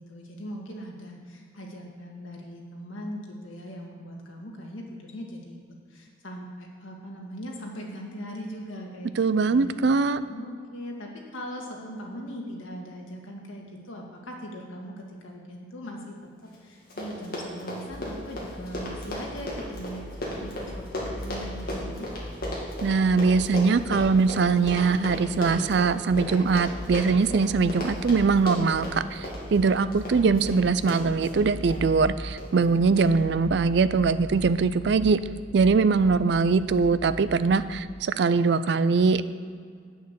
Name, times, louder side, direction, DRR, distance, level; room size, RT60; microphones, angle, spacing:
voice 1, 0.1-5.6 5.9-9.8 10.3-16.1 16.4-20.1 20.3-22.3 29.9-30.4, equal, 85° left, 0 dB, 1.8 m, -40 dB
voice 2, 9.2-10.2 22.8-35.2 35.5-39.2, right 4 dB, 60° right, 14 dB, 0.4 m, -22 dB
Run, 16.5-16.6 16.8-31.8 32.4-32.6 33.0-33.1, left 1 dB, 50° left, 2.2 m, -35 dB
sound 1, 17.8-37.8, equal, 15° right, 1.4 m, -41 dB
8.9 x 6.5 x 6.8 m, 2.1 s
head